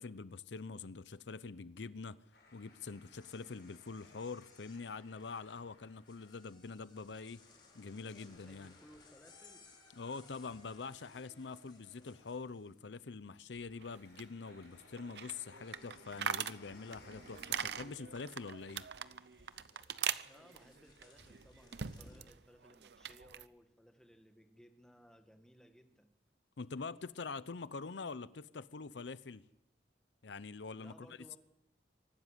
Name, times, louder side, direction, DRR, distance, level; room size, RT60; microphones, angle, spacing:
voice 1, 0.0-2.2 2.5-7.4 7.7-8.7 10.0-18.9 26.6-29.4 30.2-31.4, left 4 dB, 80° left, 0.7 m, -45 dB
sound 1, 2.3-18.0, left 3 dB, 60° left, 7.4 m, -65 dB
sound 2, 3.1-13.0 13.3-14.0 14.3-22.3, left 2 dB, 25° left, 4.1 m, -63 dB
voice 2, 8.2-9.6 20.2-26.1 30.8-31.4, equal, 5° left, 1.7 m, -61 dB
sound 3, 13.8-22.3 22.6-23.5, right 8 dB, 70° right, 0.7 m, -42 dB
24.5 x 12.5 x 9.9 m
head